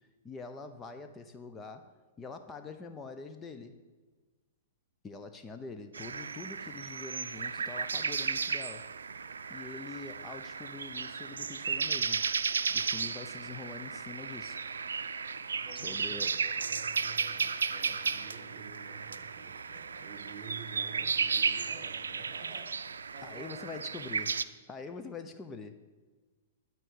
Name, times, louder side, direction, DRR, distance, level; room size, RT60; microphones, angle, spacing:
voice 1, 0.2-3.8 5.0-8.9 9.5-12.3 12.7-14.6 15.8-16.4 23.2-25.9, left 4 dB, 20° left, 7 dB, 0.7 m, -45 dB
sound 1, 5.9-24.4, right 5 dB, 90° right, 0.4 m, -34 dB
voice 2, 15.5-24.1, right 5 dB, 45° right, 7 dB, 1.7 m, -50 dB
12.5 x 4.6 x 8.4 m, 1.3 s
hypercardioid pair, 125°, 0 cm